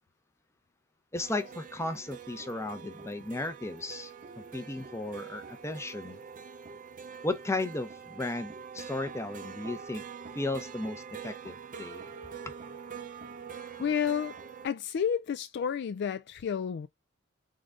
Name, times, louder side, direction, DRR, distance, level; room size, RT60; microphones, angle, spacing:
voice 1, 1.1-6.2 7.2-10.0 10.3-12.0, left 2 dB, 15° left, 0.7 m, -35 dB
sound 1, 1.2-14.7, right 6 dB, 40° right, 0.6 m, -45 dB
voice 2, 13.8-14.4 14.6-16.9, left 7 dB, 55° left, 0.3 m, -30 dB
3.8 x 3.3 x 3.7 m
head